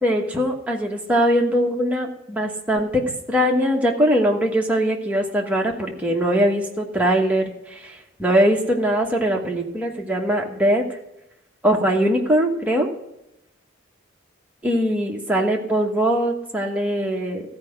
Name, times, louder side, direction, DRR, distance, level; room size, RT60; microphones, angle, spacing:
voice 1, 0.0-11.0 11.6-12.9 14.6-17.4, equal, 5° right, -1 dB, 1.3 m, -21 dB
14.5 x 4.9 x 6.5 m, 0.87 s
head